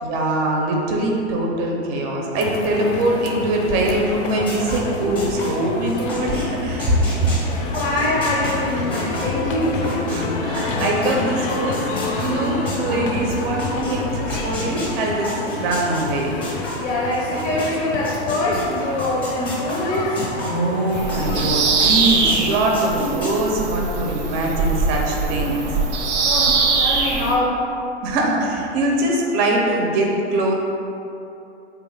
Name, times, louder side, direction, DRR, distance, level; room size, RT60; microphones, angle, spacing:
voice 1, 0.0-7.0 10.1-11.8 12.2-16.3 20.4-25.7 26.5-26.7 28.0-30.5, right 1 dB, 30° right, -1 dB, 0.4 m, -22 dB
sound 1, 2.3-21.6, left 3 dB, 50° left, 0.4 m, -29 dB
sound 2, 4.3-10.2 10.5-17.7 18.0-21.4 21.8-23.3, left 1 dB, 15° left, 0.6 m, -31 dB
voice 2, 7.7-10.2 16.8-20.2 26.2-27.7, left 1 dB, 90° left, -5 dB, 0.7 m, -24 dB
Bird vocalization bird call bird song, 20.9-27.3, right 4 dB, 90° right, 0.6 m, -21 dB
3.3 x 2.3 x 3.2 m, 2.7 s
hypercardioid pair, 125°, 34 cm